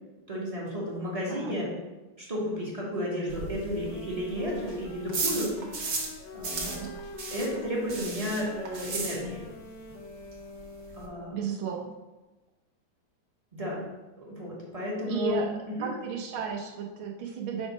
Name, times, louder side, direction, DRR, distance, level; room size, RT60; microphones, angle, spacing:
voice 1, 0.3-1.7 2.2-5.5 6.3-6.8 7.3-9.4 11.0-11.4 13.5-13.8 14.2-15.4 15.8-15.9, equal, 20° right, -4 dB, 1.2 m, -32 dB
sound 1, 3.3-6.2 6.4-9.6 9.9-10.0 10.3-10.4 10.6-11.1, right 4 dB, 60° right, 1.6 m, -35 dB
sound 2, 3.4-11.6, left 3 dB, 80° left, 1.5 m, -46 dB
voice 2, 6.6-7.0 11.3-11.8 15.1-15.5 15.8-17.7, right 7 dB, 80° right, 0 dB, 1.6 m, -34 dB
6.2 x 3.5 x 5.1 m, 1.1 s
omnidirectional pair, 2.2 m